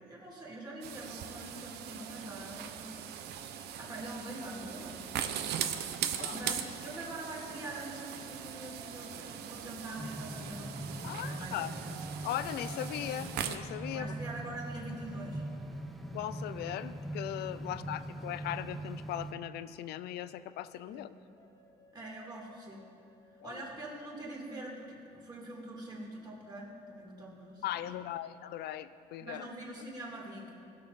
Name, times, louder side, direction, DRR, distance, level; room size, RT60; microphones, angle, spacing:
voice 1, 0.0-3.1 3.7-5.1 6.3-10.7 11.0-12.0 13.9-15.4 17.6-18.2 20.9-21.1 21.9-22.8 23.4-27.9 29.2-30.5, right 1 dB, 25° right, -4 dB, 3.1 m, -44 dB
sound 1, 0.8-13.6, right 9 dB, 80° right, 0.7 m, -40 dB
voice 2, 6.2-6.5 11.0-11.8 12.2-14.1 16.1-21.1 23.4-23.6 27.6-29.5, left 13 dB, 75° left, 14 dB, 0.5 m, -39 dB
sound 2, 6.5-10.2 10.6-18.7 19.4-25.3, left 1 dB, 20° left, 1.1 m, -59 dB
sound 3, 10.0-19.3, right 1 dB, ahead, 0.6 m, -41 dB
19.5 x 6.5 x 4.3 m, 2.6 s
cardioid pair, 110°, 17 cm